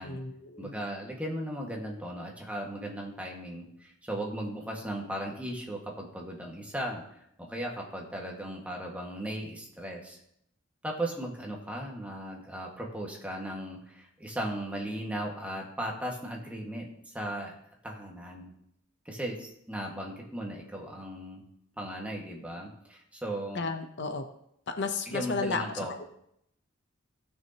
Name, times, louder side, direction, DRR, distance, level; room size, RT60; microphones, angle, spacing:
voice 1, 0.0-0.7 23.5-24.2 24.7-25.6 26.0-26.1, left 4 dB, 60° left, 6 dB, 0.8 m, -33 dB
voice 2, 0.6-10.2 10.8-17.6 17.8-18.5 19.1-21.4 21.8-23.6 25.1-26.1, right 1 dB, 5° right, -1 dB, 1.8 m, -37 dB
17.0 x 6.3 x 2.9 m, 0.74 s
head